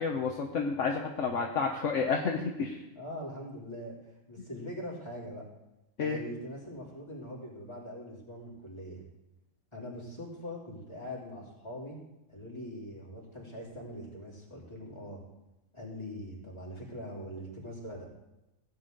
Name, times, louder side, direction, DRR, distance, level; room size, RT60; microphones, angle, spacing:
voice 1, 0.0-2.8 6.0-6.2, left 5 dB, 65° left, 1 dB, 1.3 m, -30 dB
voice 2, 3.0-5.5 6.0-9.0 9.7-12.0 12.3-15.2 15.7-18.1, equal, 20° left, -5 dB, 3.6 m, -42 dB
16.0 x 9.0 x 3.9 m, 0.94 s
omnidirectional pair, 1.4 m